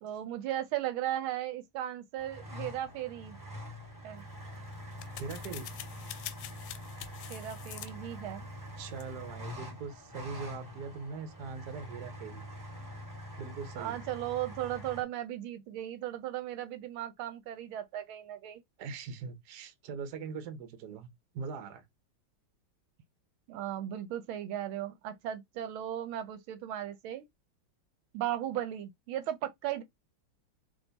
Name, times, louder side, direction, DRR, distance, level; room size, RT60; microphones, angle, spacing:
voice 1, 0.0-3.4 4.0-4.2 7.3-8.4 13.8-18.6 23.5-27.2 28.1-29.8, right 12 dB, 80° right, 1.4 m, -36 dB
sound 1, 2.2-15.0, equal, 10° right, 1.8 m, -45 dB
sound 2, 4.2-9.5, left 11 dB, 75° left, 1.3 m, -47 dB
voice 2, 5.2-5.7 8.8-12.4 13.4-14.0 18.8-21.1 21.3-21.8, right 5 dB, 60° right, 1.3 m, -41 dB
3.7 x 3.1 x 3.9 m
omnidirectional pair, 2.3 m